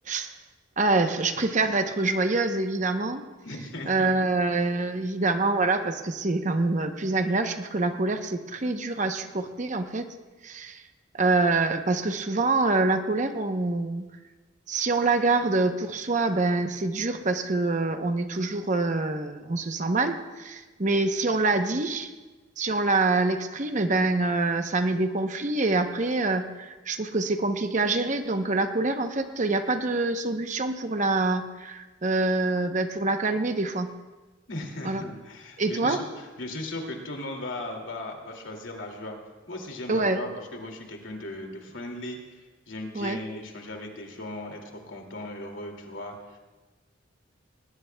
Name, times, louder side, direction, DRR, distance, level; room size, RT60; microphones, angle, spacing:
voice 1, 0.8-3.2 3.9-10.1 10.4-10.8 11.1-14.1 14.7-22.1 22.6-33.9 34.8-35.0 35.6-36.0 39.9-40.2 42.9-43.2, right 3 dB, 40° right, 7 dB, 0.8 m, -25 dB
voice 2, 3.4-4.1 34.5-39.2 39.5-46.4, left 1 dB, 80° left, 2 dB, 2.4 m, -37 dB
20.0 x 19.5 x 2.3 m, 1.2 s
head